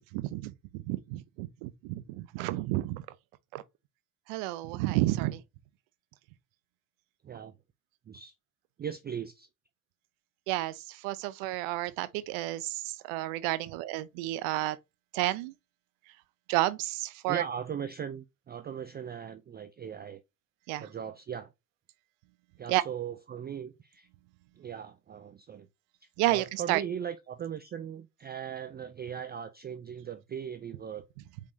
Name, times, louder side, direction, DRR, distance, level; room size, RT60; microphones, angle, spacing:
voice 1, 0.0-3.1 3.5-3.6 4.3-5.4 10.5-14.8 15.1-15.5 16.5-17.4 20.7-20.9 22.7-22.8 26.2-26.8, right 17 dB, 70° right, 0.7 m, -31 dB
voice 2, 8.8-9.5 17.3-20.2 20.8-21.5 22.6-24.1 24.6-25.7 26.3-31.0, right 8 dB, 25° right, 0.3 m, -38 dB
4.9 x 3.4 x 2.6 m
hypercardioid pair, 65°, 48 cm